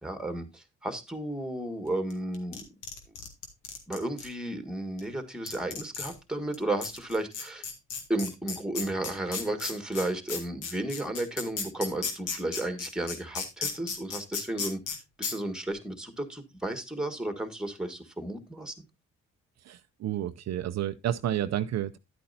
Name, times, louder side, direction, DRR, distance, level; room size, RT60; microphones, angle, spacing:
voice 1, 0.0-2.6 3.9-7.6 8.1-14.8 15.2-18.7, right 1 dB, ahead, 1.7 m, -33 dB
sound 1, 2.1-4.3 5.0-5.1 5.5-6.1 6.5-6.6 6.8-15.0 15.2-15.3, left 5 dB, 85° left, 2.1 m, -34 dB
voice 2, 19.7-22.0, right 11 dB, 60° right, 0.6 m, -30 dB
10.5 x 8.6 x 2.7 m
cardioid pair, 90°, 30 cm